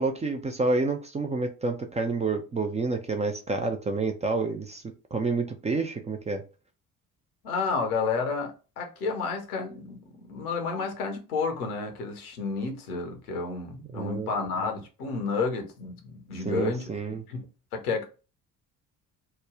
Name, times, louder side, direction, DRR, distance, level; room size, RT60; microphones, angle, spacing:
voice 1, 0.0-4.8 5.1-6.4 13.9-14.4 16.4-17.2, right 3 dB, 15° right, 0.4 m, -29 dB
voice 2, 7.4-16.9 17.3-17.5 17.7-18.0, left 4 dB, 75° left, 0.8 m, -31 dB
3.1 x 2.2 x 3.6 m
figure-of-eight pair, 45°, 45 cm